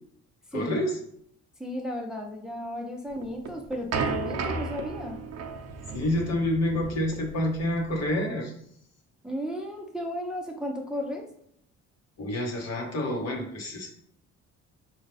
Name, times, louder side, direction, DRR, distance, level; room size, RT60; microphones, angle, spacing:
voice 1, 0.5-1.0 5.9-8.5 12.2-13.9, left 1 dB, 60° left, 1 dB, 1.1 m, -28 dB
voice 2, 1.6-5.2 9.2-11.2, equal, ahead, 0 dB, 0.6 m, -34 dB
sound 1, 3.2-8.1, right 4 dB, 55° right, 0.6 m, -34 dB
4.4 x 2.3 x 3.3 m, 0.68 s
cardioid pair, 90°, 30 cm